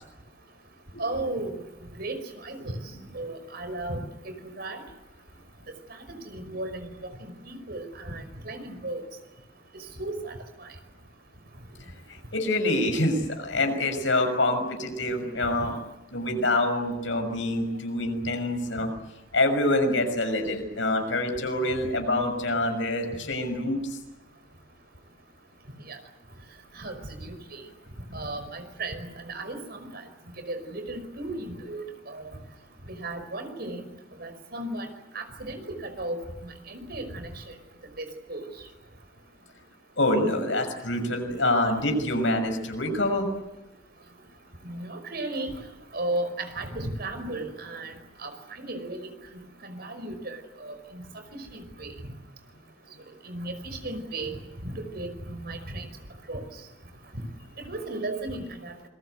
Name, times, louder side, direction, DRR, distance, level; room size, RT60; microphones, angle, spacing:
voice 1, 1.0-1.6 2.0-2.8 3.1-4.0 4.6-4.8 6.1-6.9 7.2-9.0 9.7-10.3 10.6-10.7 25.9-26.0 26.8-27.6 28.1-30.0 30.5-32.3 32.9-33.9 34.2-34.9 35.1-37.3 38.0-38.5 44.6-45.5 45.9-47.9 48.2-48.3 48.6-49.0 49.6-51.0 51.5-51.9 53.2-53.5 53.8-54.4 54.6-55.9 56.3-56.4 57.1-57.2 57.6-58.7, right 2 dB, 55° right, 8 dB, 5.2 m, -35 dB
voice 2, 12.3-15.7 16.1-18.9 19.3-24.0 40.0-43.3, left 1 dB, 85° left, 6 dB, 6.3 m, -26 dB
27.5 x 22.0 x 8.1 m, 0.99 s
head